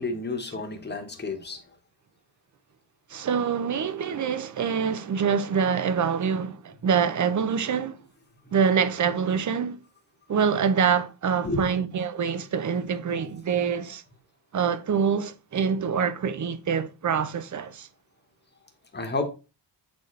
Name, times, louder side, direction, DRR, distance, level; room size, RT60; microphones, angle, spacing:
voice 1, 0.0-1.6 8.5-8.6 11.4-11.7 18.9-19.3, left 2 dB, 25° left, 1.1 m, -30 dB
voice 2, 3.1-8.0 8.5-9.8 10.3-14.0 14.5-17.9, right 6 dB, 45° right, 0.6 m, -25 dB
7.9 x 4.1 x 3.2 m
wide cardioid pair, 130°, 44 cm